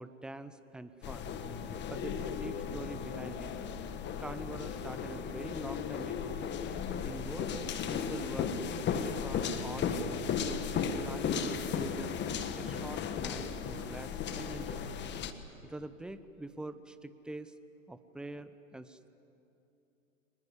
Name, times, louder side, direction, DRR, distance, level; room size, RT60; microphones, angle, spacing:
voice 1, 0.0-1.3 1.9-3.5 4.2-6.4 7.0-10.2 10.7-12.2 12.6-14.9 15.6-17.5 17.9-19.1, right 1 dB, ahead, 12 dB, 0.7 m, -44 dB
sound 1, 1.0-15.3, left 6 dB, 25° left, 1.4 m, -35 dB
24.0 x 21.0 x 9.7 m, 2.8 s
hypercardioid pair, 115°, 41 cm